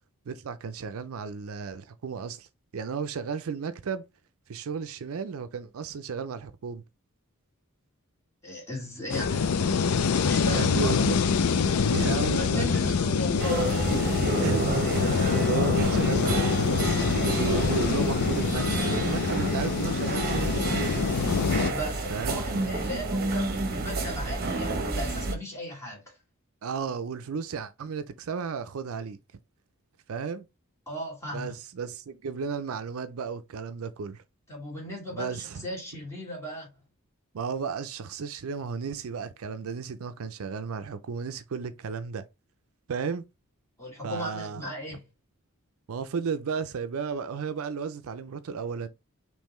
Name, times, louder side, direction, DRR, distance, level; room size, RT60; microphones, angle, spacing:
voice 1, 0.3-2.5 2.7-4.0 4.5-6.8 10.5-11.2 11.9-12.9 14.4-21.1 22.1-22.4 26.6-29.2 30.1-30.5 31.3-34.2 35.1-35.6 37.3-42.2 42.9-43.2 44.0-45.0 45.9-48.9, right 5 dB, 65° right, 0.5 m, -34 dB
voice 2, 8.4-9.5 10.2-11.1 12.3-14.1 21.6-26.0 30.9-31.5 34.5-36.7 43.8-45.0, left 1 dB, 15° left, 2.7 m, -36 dB
sound 1, 9.1-21.7, left 5 dB, 90° left, 0.5 m, -25 dB
sound 2, 13.4-25.3, right 2 dB, 45° right, 0.9 m, -30 dB
5.4 x 3.1 x 3.1 m
head